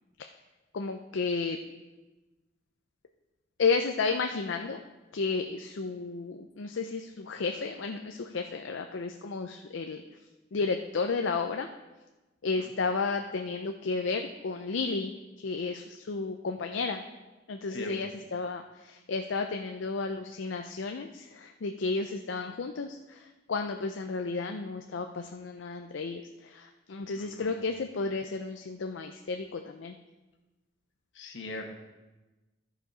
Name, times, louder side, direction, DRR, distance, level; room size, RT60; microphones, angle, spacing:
voice 1, 0.7-1.6 3.6-4.8 5.1-10.0 10.5-11.7 12.4-17.0 17.5-30.0, left 4 dB, 85° left, 5 dB, 0.5 m, -32 dB
voice 2, 27.2-27.6 31.1-31.6, left 2 dB, 70° left, 2 dB, 1.4 m, -41 dB
13.5 x 5.0 x 5.0 m, 1.1 s
head